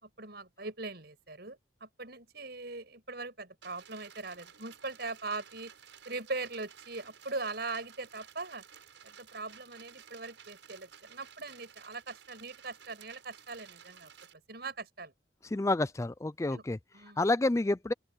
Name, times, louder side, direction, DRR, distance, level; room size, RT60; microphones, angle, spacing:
voice 1, 0.0-5.7 6.0-8.6 9.0-15.1 16.5-16.6 16.9-17.3, right 3 dB, 55° right, 6.5 m, -41 dB
sound 1, 3.6-14.3, right 8 dB, 80° right, 6.2 m, -55 dB
voice 2, 15.5-16.8 17.2-17.9, left 2 dB, 15° left, 0.4 m, -29 dB
open air
head